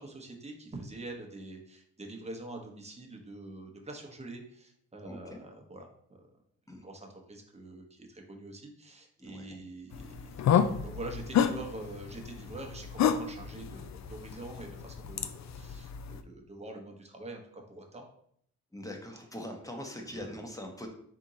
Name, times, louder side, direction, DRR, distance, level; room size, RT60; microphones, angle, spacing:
voice 1, 0.0-5.9 6.8-18.0 20.1-20.2, right 2 dB, 20° right, 1 dB, 1.0 m, -45 dB
voice 2, 5.0-5.4 6.7-6.8 9.2-9.6 18.7-20.9, left 1 dB, 10° left, 2 dB, 1.0 m, -42 dB
sound 1, 9.9-16.2, left 8 dB, 50° left, 0.5 m, -31 dB
3.5 x 2.9 x 3.9 m, 0.66 s
supercardioid pair, 50°, 35 cm